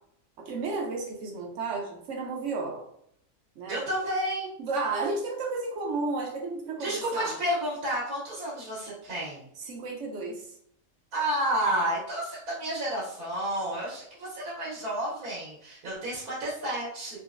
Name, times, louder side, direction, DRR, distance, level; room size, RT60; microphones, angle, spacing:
voice 1, 0.4-2.8 3.6-3.8 4.6-7.4 9.6-10.5, right 3 dB, 70° right, 1 dB, 0.8 m, -32 dB
voice 2, 3.7-4.5 6.8-9.5 11.1-17.2, right 1 dB, 85° right, -7 dB, 1.4 m, -31 dB
3.7 x 2.0 x 2.4 m, 0.70 s
omnidirectional pair, 1.5 m